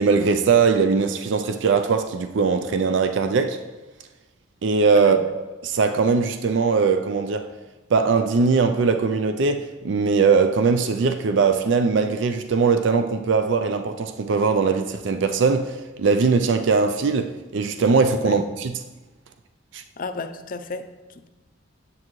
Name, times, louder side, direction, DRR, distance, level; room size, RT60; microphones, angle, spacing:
voice 1, 0.0-3.6 4.6-7.5 7.9-18.7 19.7-19.8, right 4 dB, 65° right, 0.4 m, -20 dB
voice 2, 4.9-5.3 18.2-18.4 20.0-21.3, left 3 dB, 45° left, 0.5 m, -34 dB
9.7 x 7.5 x 3.1 m
head